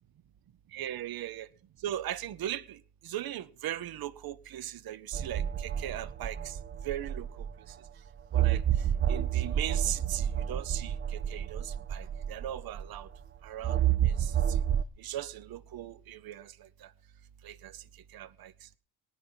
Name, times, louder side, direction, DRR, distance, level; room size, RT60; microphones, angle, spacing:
voice 1, 0.7-1.5 1.8-2.8 3.0-6.6 6.8-7.3 8.3-8.6 9.1-10.9 11.3-13.1 13.4-14.3 15.0-16.5 17.4-17.7 18.1-18.5, right 12 dB, 55° right, 0.9 m, -38 dB
sound 1, 5.1-7.7 8.3-13.0 13.6-14.8, right 10 dB, 25° right, 0.6 m, -30 dB
19.5 x 9.7 x 4.4 m
cardioid pair, 95°, 43 cm